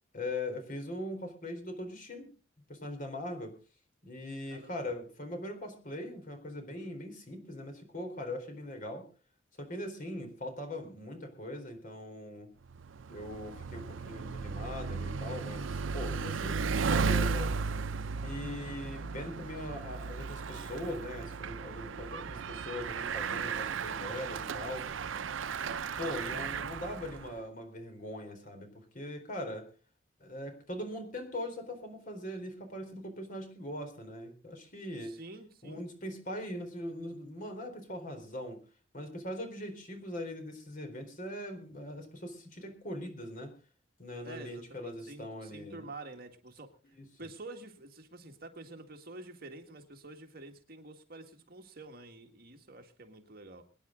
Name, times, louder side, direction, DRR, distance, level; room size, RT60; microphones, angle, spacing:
voice 1, 0.1-2.3 2.7-3.5 4.0-9.1 9.6-12.5 13.1-17.5 18.2-25.1 26.0-29.7 30.2-35.2 35.6-38.6 38.9-43.5 44.0-45.9 46.9-47.0, left 1 dB, 45° left, 5 dB, 4.2 m, -41 dB
voice 2, 4.5-4.9 35.0-35.8 44.2-46.7 47.2-53.6, right 2 dB, 50° right, 5 dB, 1.9 m, -48 dB
Bicycle, 12.7-27.3, right 5 dB, 80° right, 0.6 m, -35 dB
23.5 x 10.0 x 3.9 m, 0.35 s
head